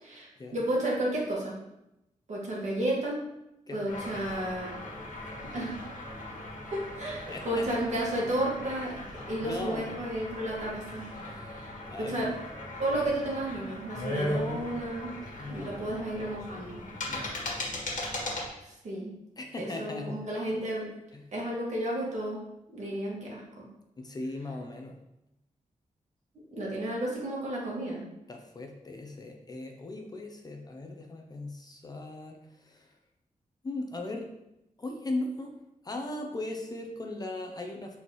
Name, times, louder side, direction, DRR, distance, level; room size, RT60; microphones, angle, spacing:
voice 1, 0.0-1.5 2.3-3.2 3.7-4.7 5.4-5.8 6.7-9.0 9.3-11.0 11.5-11.7 12.0-12.3 12.8-15.1 15.5-16.8 18.6-19.1 19.6-20.9 21.3-22.4 22.7-23.6 26.5-28.0, right 1 dB, 60° right, -4 dB, 1.8 m, -32 dB
sound 1, 3.9-18.5, left 1 dB, 70° left, 1.7 m, -38 dB
voice 2, 7.3-7.7 9.4-10.1 11.1-12.4 15.4-15.9 17.1-17.5 19.4-20.3 21.1-21.3 24.0-25.0 28.3-33.0 33.6-34.3 34.8-38.0, left 2 dB, 30° left, 2 dB, 0.6 m, -38 dB
7.2 x 4.2 x 3.1 m, 0.88 s
wide cardioid pair, 170°, 14 cm